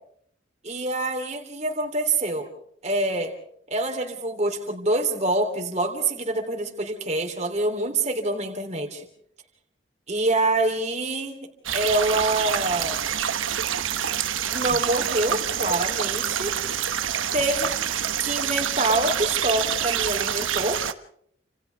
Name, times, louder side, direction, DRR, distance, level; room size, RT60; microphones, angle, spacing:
voice 1, 0.6-2.5 2.8-3.3 3.7-9.1 10.1-11.4 11.7-13.0 14.5-16.5 17.3-17.7 18.2-20.8, right 2 dB, 35° right, 4 dB, 3.4 m, -26 dB
sound 1, 11.7-20.9, right 9 dB, 80° right, 1.1 m, -26 dB
29.5 x 27.0 x 3.6 m, 0.66 s
head